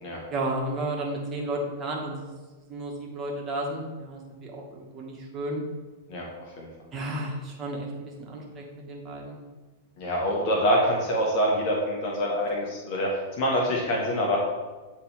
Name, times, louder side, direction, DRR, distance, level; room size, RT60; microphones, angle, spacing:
voice 1, 0.3-2.2 2.7-5.6 6.9-9.4, right 1 dB, 25° right, -2 dB, 1.5 m, -33 dB
voice 2, 10.0-14.4, equal, 50° left, -2 dB, 1.3 m, -25 dB
9.1 x 3.3 x 3.3 m, 1.3 s
figure-of-eight pair, 100°, 0 cm